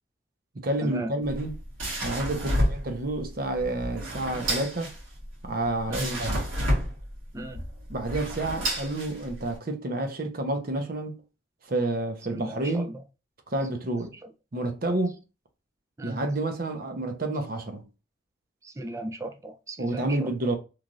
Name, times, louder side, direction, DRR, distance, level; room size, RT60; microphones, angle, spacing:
voice 1, 0.5-1.6 2.0-5.0 5.4-6.5 7.9-11.2 11.6-12.9 13.5-14.1 14.5-15.2 16.0-17.8 19.8-20.6, right 2 dB, 45° right, 0.7 m, -29 dB
sound 1, 1.2-9.6, equal, 85° right, 1.5 m, -30 dB
voice 2, 12.3-12.9 16.0-16.2 18.6-20.3, right 1 dB, 15° right, 0.4 m, -36 dB
3.1 x 2.4 x 2.5 m
head